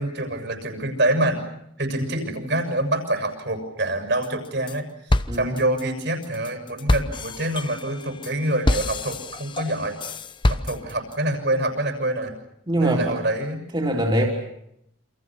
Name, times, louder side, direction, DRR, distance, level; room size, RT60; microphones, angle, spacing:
voice 1, 0.0-1.5 1.8-9.9 10.5-12.3 12.8-13.6, right 1 dB, 60° right, 7 dB, 6.9 m, -26 dB
sound 1, 4.2-4.8 5.1-11.1, left 1 dB, 25° left, 0.9 m, -26 dB
voice 2, 5.3-5.6 12.7-13.1 13.7-14.3, right 1 dB, 25° right, -1 dB, 3.8 m, -22 dB
29.0 x 27.5 x 6.2 m, 0.77 s
head